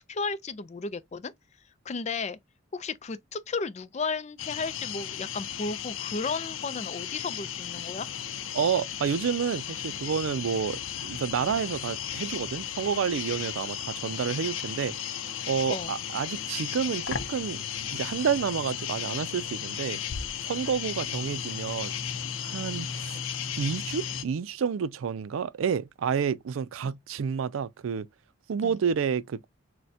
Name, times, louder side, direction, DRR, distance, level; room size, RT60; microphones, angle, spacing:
voice 1, 0.1-1.3 1.9-2.4 2.7-8.1 15.7-15.9 26.8-26.9 28.6-28.8, left 4 dB, 35° left, 0.4 m, -34 dB
sound 1, 4.4-24.2, left 9 dB, 85° left, 0.6 m, -35 dB
voice 2, 8.5-14.9 15.5-17.6 17.9-20.0 20.4-21.9 22.4-23.2 23.6-28.1 28.5-29.4, right 7 dB, 90° right, 0.4 m, -29 dB
6.3 x 2.2 x 2.7 m
head